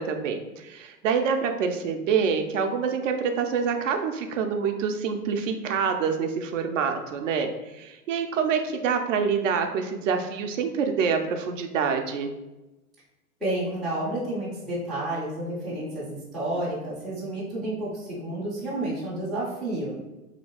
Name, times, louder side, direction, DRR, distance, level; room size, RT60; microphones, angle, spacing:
voice 1, 0.0-12.3, right 6 dB, 55° right, 5 dB, 0.5 m, -26 dB
voice 2, 13.4-19.9, right 1 dB, ahead, -11 dB, 0.3 m, -30 dB
3.0 x 2.8 x 2.8 m, 1.0 s
hypercardioid pair, 110°, 46 cm